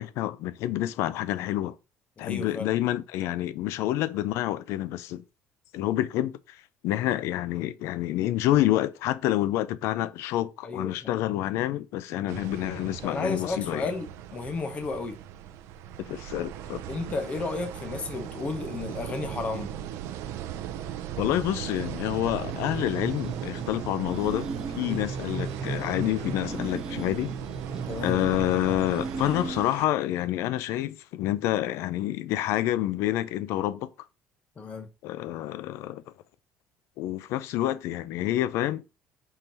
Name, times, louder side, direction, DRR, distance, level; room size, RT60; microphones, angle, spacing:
voice 1, 0.0-1.7 2.2-5.2 5.7-13.9 16.0-16.8 21.2-24.5 24.7-27.3 28.0-33.9 35.0-36.0 37.0-39.0, left 14 dB, 70° left, 0.3 m, -28 dB
voice 2, 2.2-2.7 10.6-11.2 13.0-15.2 16.9-19.8 24.9-25.0 27.9-28.2 34.6-34.9, left 3 dB, 25° left, 0.7 m, -33 dB
sound 1, 12.3-29.9, right 11 dB, 70° right, 0.4 m, -38 dB
sound 2, 22.4-29.9, right 3 dB, 10° right, 0.4 m, -37 dB
4.4 x 3.7 x 2.6 m
cardioid pair, 150°, 5 cm